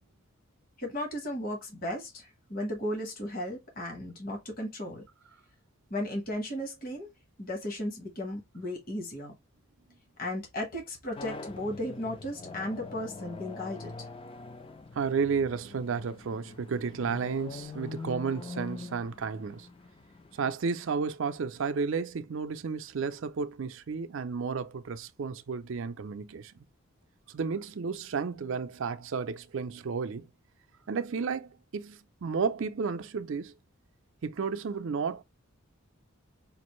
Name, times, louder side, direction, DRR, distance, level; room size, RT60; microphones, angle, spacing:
voice 1, 0.8-5.0 5.9-7.1 7.4-9.3 10.2-13.9, left 1 dB, 40° left, 1.2 m, -35 dB
sound 1, 11.2-20.5, left 3 dB, 25° left, 0.4 m, -44 dB
voice 2, 14.9-19.7 20.3-26.5 27.3-30.3 30.9-33.5 34.2-35.2, right 5 dB, 60° right, 0.4 m, -32 dB
5.2 x 2.5 x 3.0 m
head